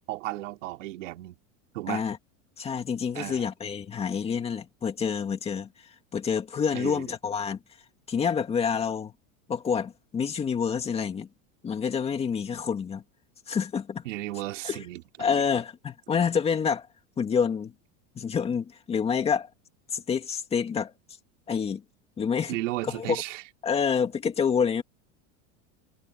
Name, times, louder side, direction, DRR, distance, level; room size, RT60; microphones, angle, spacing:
voice 1, 0.1-1.4 1.7-2.0 3.1-3.5 6.7-7.1 14.0-15.0 22.5-23.4, right 17 dB, 80° right, 2.7 m, -34 dB
voice 2, 1.9-2.2 2.6-7.6 8.1-9.1 9.5-11.3 11.6-13.0 13.5-14.0 14.6-14.8 15.2-16.9 17.2-17.7 18.2-19.5 19.9-20.9 21.5-21.8 22.2-22.5 22.8-23.2 23.6-24.8, left 6 dB, 15° left, 2.2 m, -28 dB
supercardioid pair, 170°, 37 cm